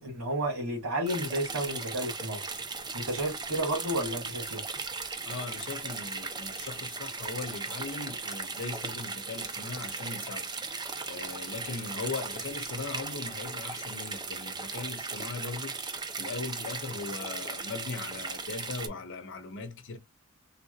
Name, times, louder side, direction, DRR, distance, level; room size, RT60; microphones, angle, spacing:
voice 1, 0.0-2.5 2.9-4.6, right 1 dB, 85° right, 1.8 m, -32 dB
sound 1, 1.1-18.9, right 4 dB, 20° right, 0.6 m, -37 dB
voice 2, 5.2-20.0, left 4 dB, 60° left, 0.8 m, -39 dB
3.7 x 2.8 x 2.3 m
head